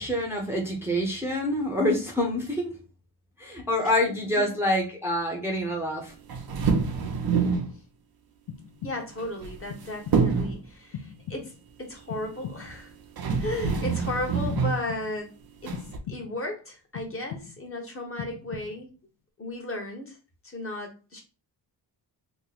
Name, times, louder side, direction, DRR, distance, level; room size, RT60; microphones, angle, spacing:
voice 1, 0.0-2.7 3.4-6.1, left 1 dB, 5° right, -1 dB, 0.8 m, -26 dB
sound 1, 6.3-7.7 9.2-9.8 10.1-10.6 12.7-12.8 13.2-14.8 15.7-16.0, right 5 dB, 55° right, 0.7 m, -26 dB
sound 2, 8.5-9.3 9.7-10.4 10.9-11.7 12.1-12.9 13.3-14.1 14.6-15.3 15.7-16.5 16.9-17.8 18.2-19.0, left 7 dB, 75° left, 0.6 m, -41 dB
voice 2, 8.8-12.9 13.4-15.3 15.6-15.8 16.1-18.9 19.4-20.2 20.4-21.2, left 1 dB, 30° left, 1 dB, 1.1 m, -35 dB
3.0 x 2.1 x 4.0 m, 0.33 s
cardioid pair, 90°, 44 cm